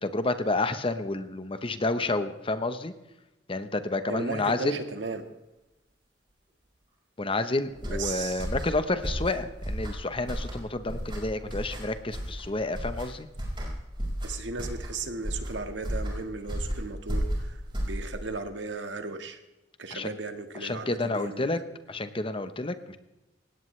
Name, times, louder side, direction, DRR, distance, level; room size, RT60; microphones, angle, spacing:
voice 1, 0.0-2.9 3.5-4.8 7.2-13.3 19.9-20.1 20.6-21.6 21.9-23.0, left 2 dB, 30° left, 10 dB, 1.0 m, -30 dB
voice 2, 4.1-5.2 7.8-8.5 14.2-19.4 19.8-21.6, right 3 dB, 70° right, 7 dB, 1.7 m, -36 dB
sound 1, 7.7-18.4, equal, 25° right, 5.1 m, -33 dB
19.5 x 17.0 x 3.3 m, 1.0 s
head